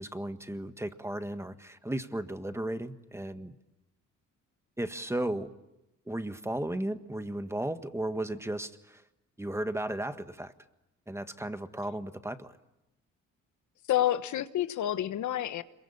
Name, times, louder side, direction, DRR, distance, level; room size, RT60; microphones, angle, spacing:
voice 1, 0.0-3.6 4.8-5.5 6.1-9.0 9.4-10.5 11.1-12.6, right 1 dB, 10° right, 9 dB, 1.6 m, -35 dB
voice 2, 13.9-15.6, left 12 dB, 75° left, 11 dB, 1.3 m, -28 dB
27.0 x 23.0 x 8.7 m, 0.94 s
cardioid pair, 90°, 30 cm